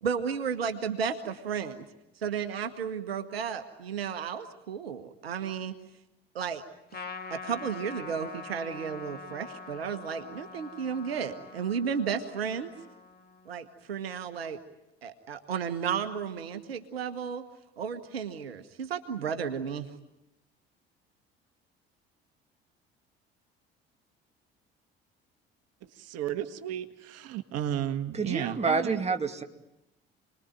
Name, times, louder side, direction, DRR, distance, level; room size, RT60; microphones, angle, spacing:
voice 1, 0.0-1.9 2.2-5.8 6.3-6.6 7.3-12.7 13.5-14.6 15.0-17.4 17.8-19.9, right 7 dB, 85° right, 9 dB, 1.3 m, -33 dB
Trumpet, 6.9-13.6, left 4 dB, 30° left, 2.7 m, -44 dB
voice 2, 25.8-29.0, right 11 dB, 55° right, 9 dB, 1.7 m, -33 dB
voice 3, 28.1-29.4, right 4 dB, 20° right, 5 dB, 2.3 m, -28 dB
29.0 x 21.0 x 9.2 m, 0.92 s
figure-of-eight pair, 60°, 30 cm